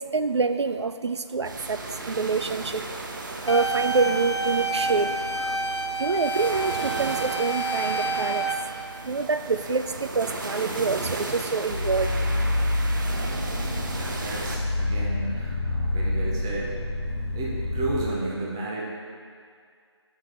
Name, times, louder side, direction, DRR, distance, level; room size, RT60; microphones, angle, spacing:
voice 1, 0.0-1.8 2.1-2.8 3.5-5.1 5.5-5.6 6.0-8.5 9.0-12.1, right 4 dB, 75° right, 10 dB, 0.4 m, -26 dB
sound 1, 1.4-14.6, right 2 dB, 45° right, 0.8 m, -35 dB
sound 2, 3.5-8.5, right 3 dB, 75° left, 0.7 m, -28 dB
sound 3, 11.7-18.1, left 2 dB, 55° left, 1.0 m, -27 dB
voice 2, 13.9-16.7 17.3-18.8, right 2 dB, 10° right, -4 dB, 0.4 m, -32 dB
8.5 x 6.0 x 4.6 m, 2.2 s
figure-of-eight pair, 160°, 15 cm